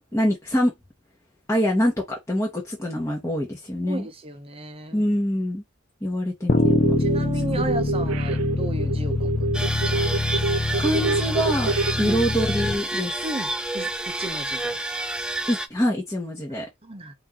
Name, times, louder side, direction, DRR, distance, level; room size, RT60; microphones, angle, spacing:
voice 1, 0.1-0.7 1.5-4.1 4.9-5.6 6.0-6.8 7.5-7.8 10.8-11.7 12.0-13.2 15.5-16.7, equal, 15° left, 1.2 m, -25 dB
voice 2, 3.9-5.1 7.0-10.1 12.0-12.2 13.2-14.8 16.8-17.1, right 1 dB, 25° right, 0.8 m, -34 dB
sound 1, 6.5-12.7, left 2 dB, 35° left, 0.7 m, -25 dB
sound 2, 6.6-7.2 7.6-11.9, right 3 dB, 80° right, 0.5 m, -26 dB
sound 3, 9.5-15.7, right 1 dB, 5° right, 0.4 m, -29 dB
4.6 x 2.8 x 3.7 m
head